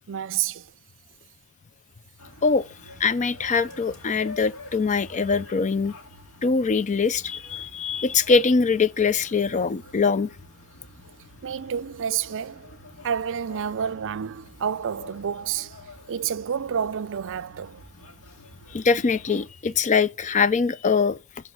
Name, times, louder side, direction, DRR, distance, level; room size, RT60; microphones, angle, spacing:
voice 1, 0.1-0.7 11.4-12.7 13.0-15.8 16.1-17.8, right 8 dB, 60° right, 0.5 m, -29 dB
sound 1, 2.2-19.5, left 1 dB, 65° left, 2.2 m, -48 dB
voice 2, 3.0-5.9 6.4-10.3 18.7-21.2, left 5 dB, 35° left, 0.5 m, -22 dB
12.5 x 4.9 x 6.8 m
head